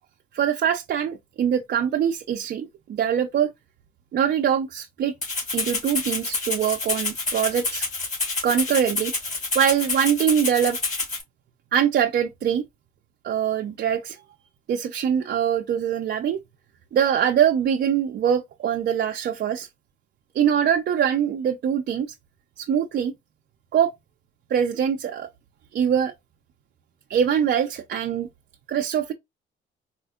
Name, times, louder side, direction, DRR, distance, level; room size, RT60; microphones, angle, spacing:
voice 1, 0.3-3.5 4.1-5.1 5.5-7.9 8.4-9.1 9.5-10.8 11.7-12.6 13.2-14.2 14.7-16.4 16.9-19.7 20.3-22.1 22.6-23.1 23.7-23.9 24.5-25.3 25.7-26.1 27.1-28.3 28.7-29.1, right 8 dB, 55° right, 0.5 m, -23 dB
Rattle (instrument), 5.2-11.2, left 3 dB, 35° left, 2.2 m, -28 dB
4.3 x 2.6 x 2.3 m
cardioid pair, 90°, 20 cm